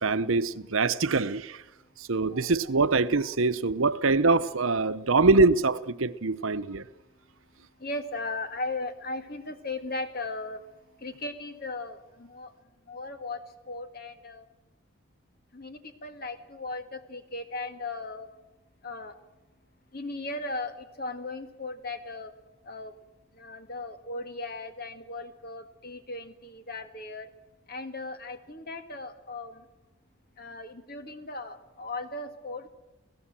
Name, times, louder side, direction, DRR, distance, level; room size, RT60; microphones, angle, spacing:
voice 1, 0.0-1.6 2.0-6.8, right 3 dB, 75° right, 0.8 m, -24 dB
voice 2, 7.8-10.6 11.0-12.5 12.9-13.4 13.7-14.4 15.5-18.3 18.8-19.2 19.9-22.3 22.6-22.9 23.3-27.3 27.7-29.7 30.4-32.7, left 2 dB, 45° left, 2.0 m, -37 dB
27.0 x 17.0 x 7.5 m
head